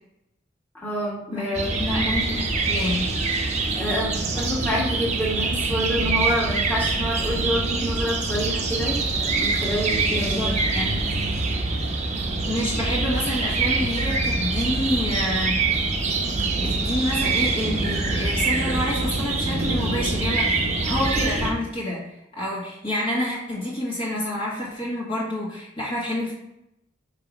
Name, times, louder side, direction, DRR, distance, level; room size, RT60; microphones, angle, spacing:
voice 1, 0.7-1.8 3.7-10.6, equal, 10° left, -6 dB, 1.9 m, -28 dB
voice 2, 1.3-3.1 10.0-11.0 12.5-15.6 16.6-26.3, left 1 dB, 30° left, -6 dB, 1.5 m, -28 dB
sound 1, 1.5-21.5, right 3 dB, 40° right, 0.8 m, -25 dB
5.7 x 3.4 x 5.1 m, 0.86 s
head